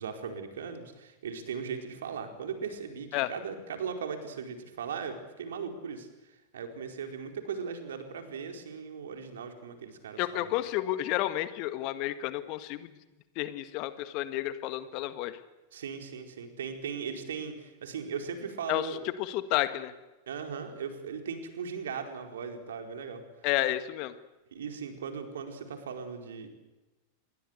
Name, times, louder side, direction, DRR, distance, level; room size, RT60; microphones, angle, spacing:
voice 1, 0.0-10.5 15.7-19.0 20.3-23.2 24.5-26.5, right 6 dB, 65° right, 5 dB, 4.5 m, -38 dB
voice 2, 10.2-12.9 13.4-15.4 18.7-19.9 23.4-24.1, left 15 dB, 45° left, 12 dB, 1.8 m, -31 dB
27.5 x 22.5 x 8.2 m, 1.1 s
figure-of-eight pair, 90°, 0 cm